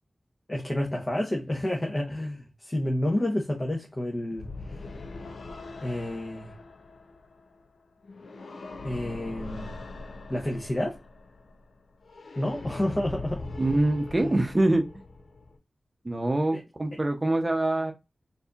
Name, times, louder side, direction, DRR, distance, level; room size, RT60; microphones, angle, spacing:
voice 1, 0.5-4.8 5.8-6.5 8.8-9.7 10.3-11.0 12.4-13.4 14.2-14.3 16.5-16.6, left 1 dB, 30° left, 0.9 m, -30 dB
sound 1, 4.4-15.6, left 3 dB, 80° left, 0.5 m, -42 dB
voice 2, 13.6-14.9 16.0-17.9, right 1 dB, 30° right, 0.7 m, -24 dB
4.2 x 2.6 x 2.4 m
cardioid pair, 50°, 0 cm